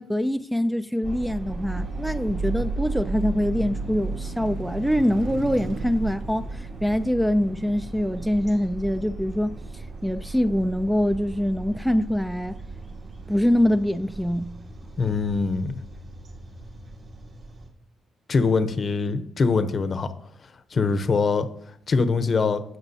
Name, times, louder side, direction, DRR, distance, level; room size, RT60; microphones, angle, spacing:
voice 1, 0.0-9.5 10.0-12.6 13.3-14.5, equal, ahead, 0.4 m, -24 dB
sound 1, 1.0-17.7, right 3 dB, 50° right, 2.5 m, -35 dB
Car passing by, 1.3-13.4, right 4 dB, 75° right, 0.8 m, -43 dB
voice 2, 15.0-15.8 18.3-20.1 20.7-21.5 21.9-22.6, left 4 dB, 45° left, 0.8 m, -23 dB
17.0 x 5.9 x 2.8 m
cardioid pair, 90°, 0 cm